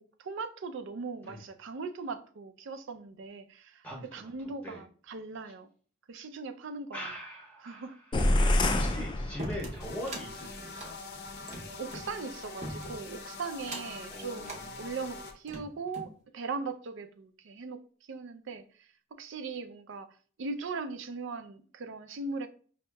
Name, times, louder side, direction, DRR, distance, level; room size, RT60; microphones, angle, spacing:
voice 1, 0.0-3.9 4.1-5.7 6.1-7.1 7.6-8.0 11.4-11.5 11.8-22.5, right 4 dB, 65° right, 0.4 m, -39 dB
voice 2, 3.8-4.3 4.6-4.8 6.9-7.9 8.6-11.0 14.1-14.9, equal, 10° left, 0.7 m, -42 dB
sound 1, 8.1-10.0, left 1 dB, 25° left, 0.3 m, -27 dB
sound 2, 9.4-10.3 10.7-12.1 12.6-13.1 13.6-14.0 14.4-14.6 15.2-16.1, right 1 dB, 35° right, 0.7 m, -41 dB
sound 3, 9.8-15.3, left 3 dB, 55° left, 0.6 m, -44 dB
5.2 x 2.7 x 2.2 m
head